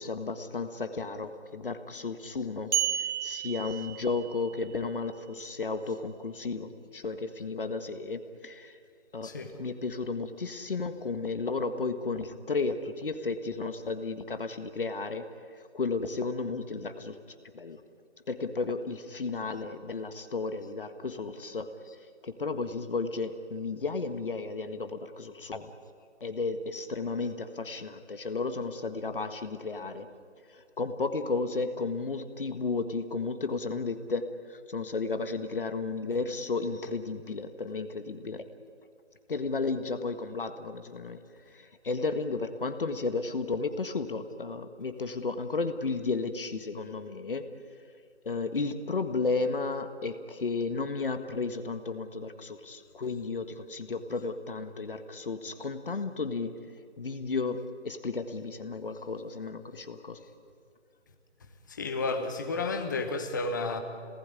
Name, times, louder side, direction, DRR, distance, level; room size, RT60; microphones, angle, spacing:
voice 1, 0.0-2.7 3.2-8.8 9.1-9.3 9.6-15.3 15.7-17.2 17.5-17.8 18.3-21.7 22.2-25.7 26.2-30.1 30.5-38.4 39.3-41.2 41.5-47.5 48.2-56.6 57.0-60.2, left 4 dB, 45° left, 9 dB, 1.6 m, -33 dB
sound 1, 2.7-4.6, right 10 dB, 65° right, 3.5 m, -32 dB
voice 2, 61.8-63.8, left 3 dB, 15° left, 6 dB, 1.2 m, -31 dB
27.5 x 19.0 x 9.8 m, 2.3 s
figure-of-eight pair, 165°, 36 cm